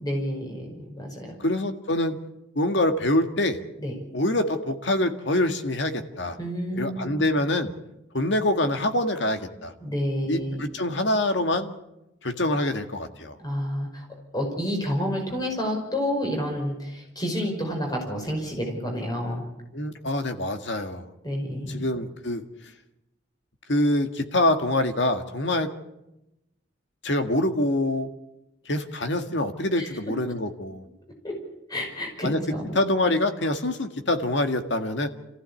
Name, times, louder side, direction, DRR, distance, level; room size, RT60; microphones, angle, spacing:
voice 1, 0.0-1.4 3.8-3.9 6.4-7.1 9.8-10.6 13.4-14.1 14.3-19.4 21.2-21.9 29.7-29.9 31.2-31.4 31.7-32.8, equal, 20° left, 1 dB, 5.4 m, -29 dB
voice 2, 1.4-2.2 2.6-3.6 4.1-6.4 6.8-7.7 8.1-9.7 10.3-11.7 12.2-13.4 19.7-21.1 21.7-22.4 23.7-25.7 27.0-28.1 28.7-30.8 32.2-32.4 32.7-35.1, left 1 dB, 70° left, 7 dB, 1.9 m, -25 dB
26.5 x 15.5 x 8.4 m, 0.92 s
head